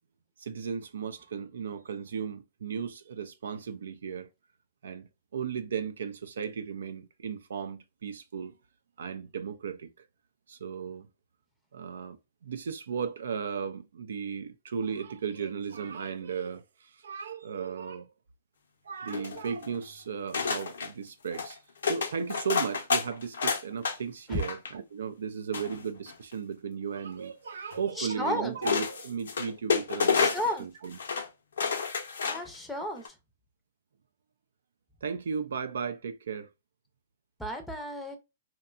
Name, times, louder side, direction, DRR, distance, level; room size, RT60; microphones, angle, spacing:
voice 1, 0.4-4.3 4.8-8.5 9.0-9.9 10.5-11.1 11.7-12.2 12.4-18.1 18.8-21.6 21.8-31.0 35.0-36.5, right 6 dB, 80° right, 0.3 m, -35 dB
sound 1, 19.1-19.8 20.3-20.9 21.3-21.5 21.8-24.0 24.3-24.7 25.5-26.3 27.7-27.8 28.6-30.6 30.9-31.3 31.6-32.6 33.0-33.1, left 6 dB, 80° left, 0.6 m, -29 dB
voice 2, 28.0-28.6 30.2-30.7 32.3-33.0 37.4-38.2, left 1 dB, 5° left, 0.6 m, -33 dB
2.7 x 2.2 x 2.3 m
hypercardioid pair, 130°, 0 cm